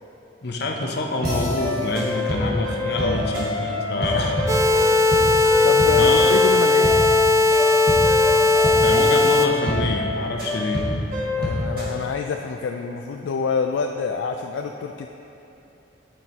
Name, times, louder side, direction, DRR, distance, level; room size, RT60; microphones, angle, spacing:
voice 1, 0.4-4.4 6.0-6.3 8.8-10.8, left 2 dB, 55° left, 1 dB, 0.7 m, -26 dB
sound 1, 1.2-11.9, left 1 dB, 50° right, 1.5 m, -26 dB
voice 2, 2.8-3.2 4.0-4.4 5.6-7.1 11.3-15.1, left 5 dB, 70° left, 3 dB, 0.3 m, -27 dB
sound 2, 4.5-9.5, left 3 dB, 15° right, 0.3 m, -17 dB
9.8 x 4.4 x 4.1 m, 2.9 s
head